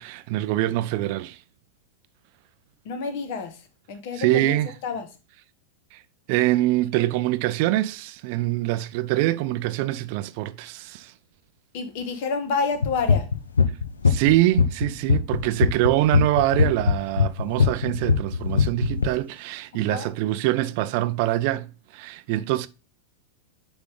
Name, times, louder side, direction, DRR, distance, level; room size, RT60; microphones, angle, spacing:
voice 1, 0.0-1.4 4.2-4.7 5.9-6.0 6.3-11.1 14.1-22.7, right 16 dB, 45° right, 0.5 m, -24 dB
voice 2, 2.8-3.6 3.9-5.1 11.7-13.3 19.9-20.1, left 5 dB, 50° left, 1.4 m, -29 dB
sound 1, 12.8-19.1, left 5 dB, 75° left, 0.7 m, -20 dB
9.3 x 3.5 x 3.6 m
figure-of-eight pair, 90°, 0 cm